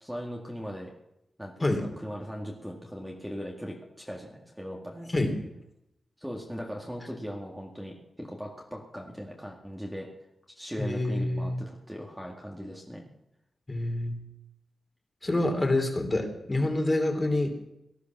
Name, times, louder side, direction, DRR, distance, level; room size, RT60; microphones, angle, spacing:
voice 1, 0.0-0.9 1.4-1.5 2.0-5.1 6.2-10.1 10.6-13.1, equal, 5° right, -1 dB, 2.0 m, -39 dB
voice 2, 10.8-11.6 13.7-14.2 15.2-17.5, left 2 dB, 25° left, 4 dB, 3.0 m, -27 dB
18.5 x 12.0 x 6.1 m, 0.84 s
wide cardioid pair, 100°, 0 cm